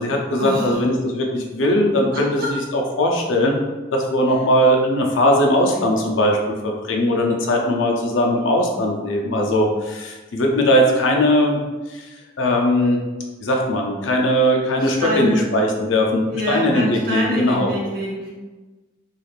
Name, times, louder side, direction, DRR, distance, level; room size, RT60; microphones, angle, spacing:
voice 1, 0.0-3.6 3.9-6.4 6.6-11.6 11.9-12.1 12.4-13.0 13.4-17.7, equal, 80° left, 1 dB, 0.5 m, -19 dB
voice 2, 2.1-2.5 14.8-15.5 16.3-18.3, equal, 50° right, -5 dB, 0.9 m, -26 dB
3.2 x 2.4 x 2.4 m, 1.2 s
head